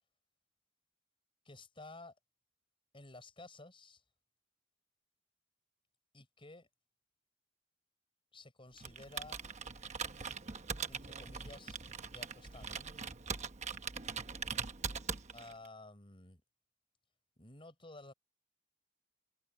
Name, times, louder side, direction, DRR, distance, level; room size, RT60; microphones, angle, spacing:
voice 1, 1.4-2.1 2.9-4.0 6.1-6.7 8.3-9.4 10.9-11.8 12.0-13.0 15.3-16.4 17.4-18.1, left 2 dB, 30° left, 6.2 m, -53 dB
Computer keyboard, 8.8-15.7, right 6 dB, 40° right, 1.0 m, -42 dB
open air
head